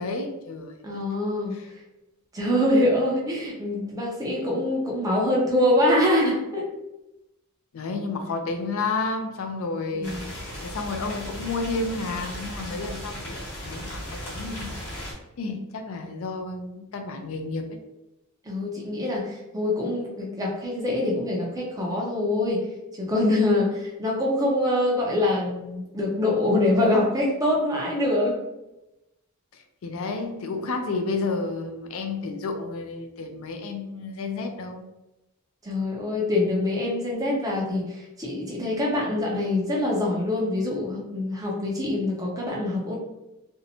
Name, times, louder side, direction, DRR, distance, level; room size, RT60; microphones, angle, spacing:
voice 1, 0.0-1.0 1.5-1.7 7.7-14.8 15.1-17.8 29.5-34.8, left 3 dB, 65° left, 5 dB, 0.4 m, -31 dB
voice 2, 0.8-1.5 2.3-6.6 9.9-10.2 18.5-22.7 23.0-28.4 35.6-43.0, left 1 dB, 15° right, -3 dB, 0.5 m, -24 dB
sound 1, 10.0-15.1, equal, 85° left, 1.0 m, -36 dB
2.6 x 2.1 x 2.7 m, 0.95 s
head